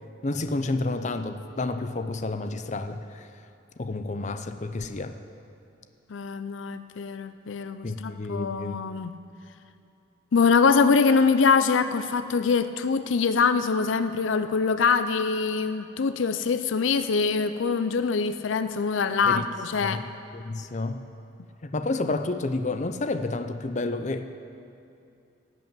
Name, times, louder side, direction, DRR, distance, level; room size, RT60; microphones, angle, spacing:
voice 1, 0.2-3.3 3.8-5.1 7.8-8.8 19.3-19.4 19.8-20.0 20.3-21.0 21.6-24.3, left 2 dB, 40° left, 9 dB, 0.6 m, -30 dB
voice 2, 6.1-9.1 10.3-20.0, left 5 dB, 80° left, 11 dB, 0.5 m, -24 dB
16.0 x 6.2 x 8.8 m, 2.6 s
head